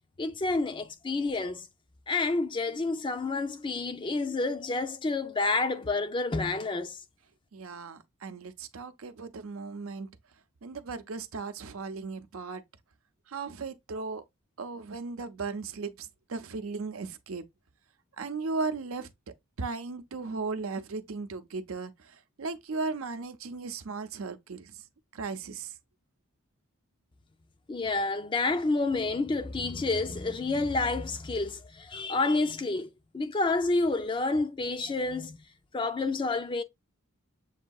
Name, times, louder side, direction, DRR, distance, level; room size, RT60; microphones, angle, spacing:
voice 1, 0.2-1.7 2.1-7.0 27.7-35.4 35.7-36.6, left 3 dB, 25° left, 0.4 m, -29 dB
voice 2, 7.5-10.1 10.6-12.6 13.3-14.2 14.6-17.4 18.2-24.7 25.1-25.7, right 4 dB, 75° right, 0.6 m, -36 dB
7.3 x 2.6 x 2.3 m
head